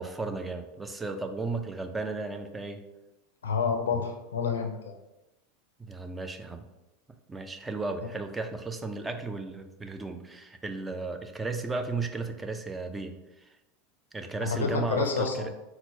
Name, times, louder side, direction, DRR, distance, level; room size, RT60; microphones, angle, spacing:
voice 1, 0.0-2.8 5.8-6.7 7.3-13.5 14.1-15.5, right 3 dB, 15° right, 6 dB, 0.4 m, -34 dB
voice 2, 3.4-5.0 14.4-15.5, left 5 dB, 90° left, 4 dB, 0.4 m, -29 dB
4.2 x 2.0 x 2.7 m, 0.97 s
hypercardioid pair, 100°, 0 cm